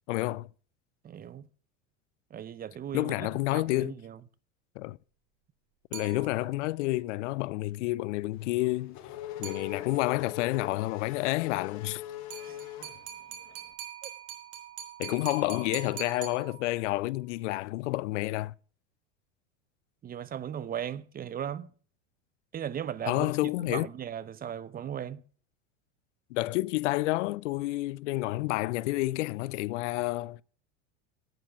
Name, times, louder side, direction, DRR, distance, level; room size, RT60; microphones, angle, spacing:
voice 1, 0.1-0.5 2.9-3.9 4.8-5.0 5.9-9.0 9.4-12.0 15.0-18.5 23.1-23.9 26.3-30.4, left 19 dB, 75° left, 0.5 m, -29 dB
voice 2, 1.0-1.4 2.3-4.2 12.4-12.6 14.0-14.1 20.0-21.7 22.5-25.2, right 9 dB, 25° right, 0.6 m, -37 dB
sound 1, 5.9-6.7 9.4-10.2 12.3-17.0, right 10 dB, 75° right, 3.4 m, -44 dB
Race car auto racing / Accelerating revving vroom, 8.4-13.6, left 12 dB, 50° left, 1.6 m, -42 dB
9.5 x 9.1 x 5.8 m
hypercardioid pair, 100°, 37 cm